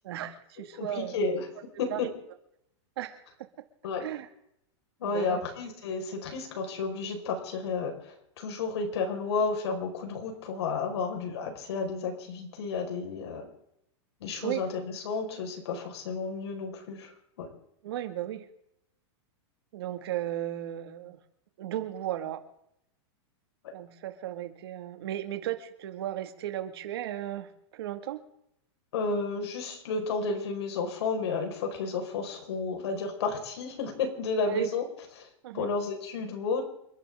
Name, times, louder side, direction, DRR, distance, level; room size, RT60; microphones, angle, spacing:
voice 1, 0.0-1.2 1.9-2.1 3.0-3.2 3.6-3.7 4.0-4.3 5.0-5.4 14.4-14.7 17.8-18.5 19.7-21.2 21.6-22.4 23.7-28.2 34.5-34.7 35.4-35.7, right 12 dB, 60° right, 7 dB, 2.1 m, -35 dB
voice 2, 0.7-1.5 1.8-2.1 3.8-4.0 5.0-13.5 14.2-17.1 17.4-17.5 28.9-34.8 35.2-35.3 35.5-36.6, left 4 dB, 65° left, 3 dB, 5.1 m, -32 dB
28.5 x 11.0 x 3.7 m, 0.76 s
supercardioid pair, 175°, 15 cm